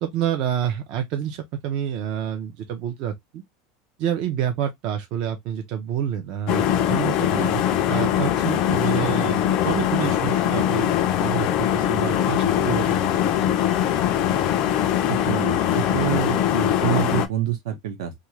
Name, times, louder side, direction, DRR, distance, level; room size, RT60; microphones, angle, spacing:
voice 1, 0.0-3.4 4.0-7.3 7.9-12.9 13.2-13.3, right 9 dB, 35° right, 0.4 m, -28 dB
sound 1, 6.5-17.3, left 10 dB, 35° left, 0.4 m, -22 dB
voice 2, 7.3-7.6 15.1-18.1, right 11 dB, 75° right, 0.9 m, -27 dB
2.7 x 2.4 x 3.0 m
supercardioid pair, 175°, 2 cm